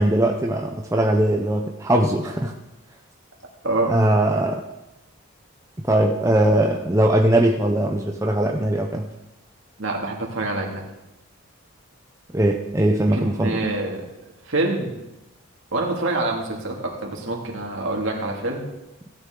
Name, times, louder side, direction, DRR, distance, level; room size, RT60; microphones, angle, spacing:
voice 1, 0.0-2.5 3.9-4.6 5.8-9.1 12.3-13.6, right 1 dB, 15° right, 2 dB, 0.6 m, -20 dB
voice 2, 9.8-10.8 13.1-14.1 14.4-15.0 15.7-18.6, right 2 dB, 60° right, -1 dB, 2.4 m, -26 dB
16.0 x 9.6 x 3.8 m, 0.94 s
head